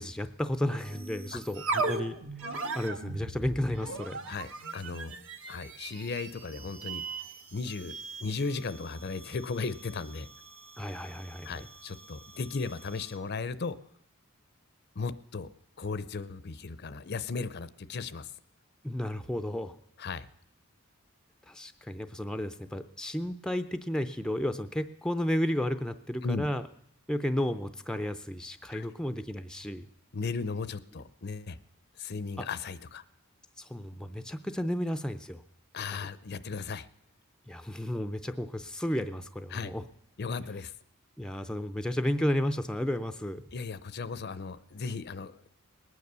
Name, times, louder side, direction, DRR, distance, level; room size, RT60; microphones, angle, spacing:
voice 1, 0.0-4.2 10.8-11.6 18.8-19.8 21.5-26.6 27.1-29.9 32.4-32.5 33.6-35.4 35.9-36.1 37.5-39.8 41.2-43.4, left 1 dB, 5° left, 10 dB, 0.5 m, -33 dB
sound 1, 0.8-13.3, right 3 dB, 65° right, 1.4 m, -39 dB
voice 2, 4.3-5.1 5.5-7.0 7.5-10.3 11.4-13.8 15.0-15.5 15.8-18.3 20.0-20.3 26.2-26.5 28.7-28.9 30.1-31.6 32.0-33.0 35.7-36.9 39.5-39.7 40.2-40.7 43.5-45.5, left 4 dB, 50° left, 16 dB, 0.6 m, -36 dB
19.5 x 9.5 x 6.8 m, 0.72 s
head